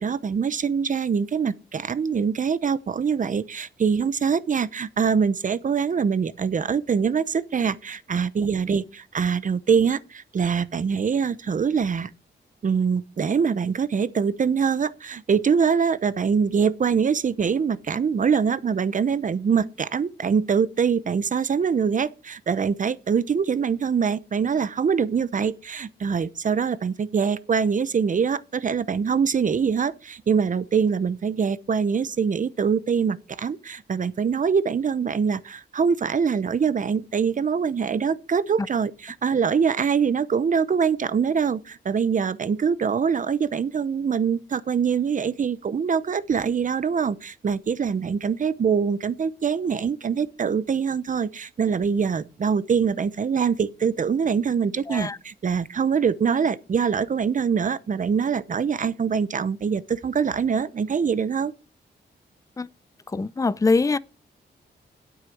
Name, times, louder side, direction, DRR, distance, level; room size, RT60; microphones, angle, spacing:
voice 1, 0.0-12.1 12.6-61.5, right 6 dB, 45° right, 0.8 m, -24 dB
voice 2, 54.9-55.2 62.6-62.7 63.1-64.0, left 3 dB, 20° left, 0.5 m, -23 dB
9.8 x 8.8 x 6.4 m
wide cardioid pair, 105°, 19 cm